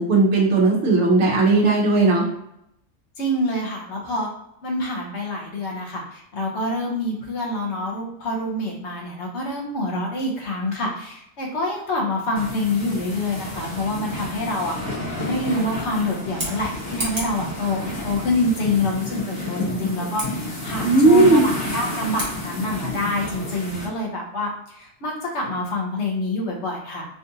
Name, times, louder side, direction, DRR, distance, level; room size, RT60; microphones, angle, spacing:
voice 1, 0.0-2.3 20.8-21.4, right 3 dB, 65° right, -4 dB, 1.1 m, -16 dB
voice 2, 3.2-4.3 4.6-27.1, left 2 dB, 65° left, -1 dB, 1.1 m, -26 dB
sound 1, 12.4-23.9, left 2 dB, 80° left, 1.6 m, -31 dB
Scissors, 16.2-17.4 20.1-20.3 22.1-22.4, right 1 dB, 35° right, 1.0 m, -31 dB
3.6 x 2.5 x 2.7 m, 0.79 s
omnidirectional pair, 1.3 m